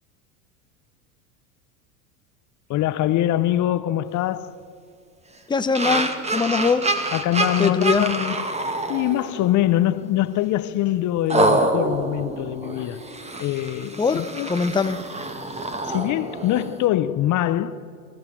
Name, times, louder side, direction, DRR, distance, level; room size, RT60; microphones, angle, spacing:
voice 1, 2.7-4.5 7.1-8.4 8.9-13.0 13.4-14.5 15.8-17.7, left 13 dB, 45° left, 0.8 m, -23 dB
voice 2, 5.5-6.9 7.6-8.1 14.0-15.0, left 5 dB, 10° left, 0.9 m, -22 dB
sound 1, 5.8-9.6 10.0-10.3 11.3-16.9, right 2 dB, 15° right, 2.2 m, -26 dB
25.0 x 15.0 x 7.5 m
hypercardioid pair, 95°, 43 cm